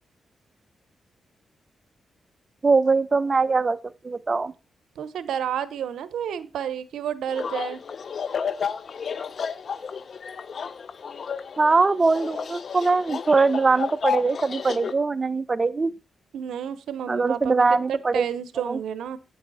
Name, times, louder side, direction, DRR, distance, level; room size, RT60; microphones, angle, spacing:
voice 1, 2.6-3.8 4.0-4.5 11.6-15.9 17.1-18.2 18.6-18.8, right 4 dB, 35° right, 0.7 m, -21 dB
voice 2, 5.0-7.8 16.3-19.2, right 9 dB, 90° right, 0.8 m, -30 dB
sound 1, 7.3-14.9, left 6 dB, 60° left, 0.7 m, -32 dB
9.1 x 7.5 x 4.2 m
cardioid pair, 75°, 0 cm